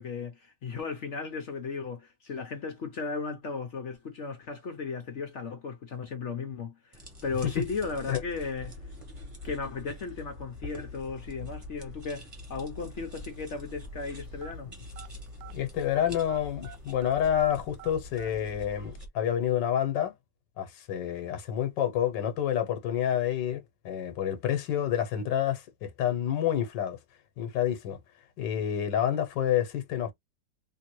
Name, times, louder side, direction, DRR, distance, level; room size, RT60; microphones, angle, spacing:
voice 1, 0.0-8.8 9.4-14.7, left 4 dB, 55° left, 0.8 m, -36 dB
sound 1, 6.9-19.1, left 1 dB, 20° right, 1.0 m, -44 dB
sound 2, 14.3-16.0 16.3-18.3, right 7 dB, 80° right, 1.2 m, -48 dB
voice 2, 15.5-20.1 20.6-27.0 27.4-28.0 28.4-30.1, left 10 dB, 90° left, 1.5 m, -28 dB
3.5 x 2.8 x 3.0 m
omnidirectional pair, 1.9 m